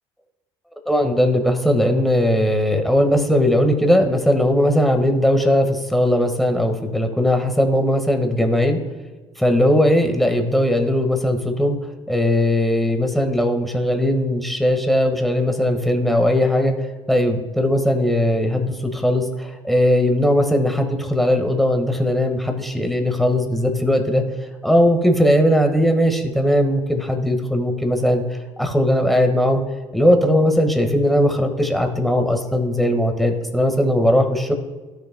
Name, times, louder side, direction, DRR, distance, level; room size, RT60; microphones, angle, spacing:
voice 1, 0.8-8.8 9.4-11.8 12.1-16.7 17.1-24.2 24.6-29.6 29.9-34.5, equal, ahead, 4 dB, 1.7 m, -19 dB
16.0 x 6.8 x 2.3 m, 1.3 s
hypercardioid pair, 60°, 14 cm